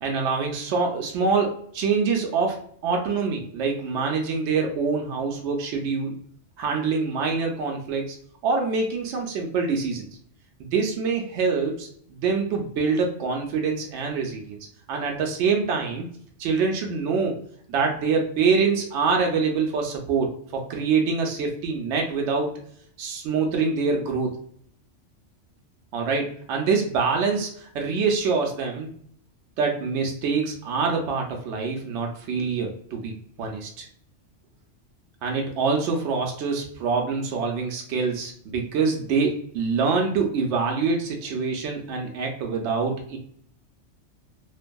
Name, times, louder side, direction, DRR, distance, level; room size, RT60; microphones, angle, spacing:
voice 1, 0.0-6.1 6.6-8.2 8.4-10.0 10.6-14.6 14.9-16.1 16.4-17.3 17.7-22.5 23.0-24.3 25.9-28.9 29.6-33.1 33.4-33.9 35.2-43.2, right 5 dB, 75° right, 2 dB, 0.8 m, -25 dB
2.6 x 2.5 x 2.2 m, 0.63 s
omnidirectional pair, 1.2 m